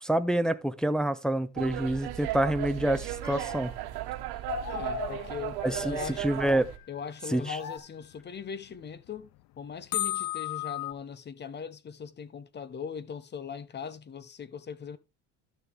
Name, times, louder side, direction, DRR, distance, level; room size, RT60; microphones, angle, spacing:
voice 1, 0.0-3.7 5.6-6.7 7.3-7.6, right 1 dB, ahead, 0.5 m, -27 dB
sound 1, 1.6-6.8, right 15 dB, 75° right, 1.3 m, -36 dB
sound 2, 1.9-2.2 3.2-4.1 4.5-5.8 6.5-6.6 7.5-7.8, left 6 dB, 45° left, 1.7 m, -39 dB
voice 2, 4.7-6.3 6.9-9.3 9.6-15.0, left 6 dB, 25° left, 0.8 m, -40 dB
sound 3, 5.6-7.3 8.1-8.2 8.7-8.8 9.0-9.1 9.9-10.9, left 16 dB, 60° left, 0.6 m, -35 dB
12.5 x 6.8 x 3.4 m
cardioid pair, 120°, 39 cm